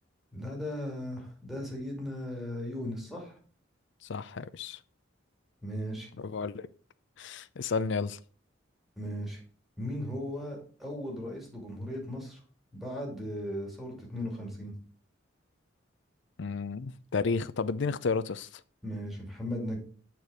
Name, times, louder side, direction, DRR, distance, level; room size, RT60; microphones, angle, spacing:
voice 1, 0.3-3.4 5.6-6.1 9.0-9.4 9.8-12.4 12.7-14.7 18.8-19.8, equal, ahead, 2.5 m, -37 dB
voice 2, 4.1-4.8 6.2-6.7 7.2-8.2 16.4-18.5, left 4 dB, 65° left, 0.5 m, -32 dB
8.3 x 4.6 x 4.9 m
head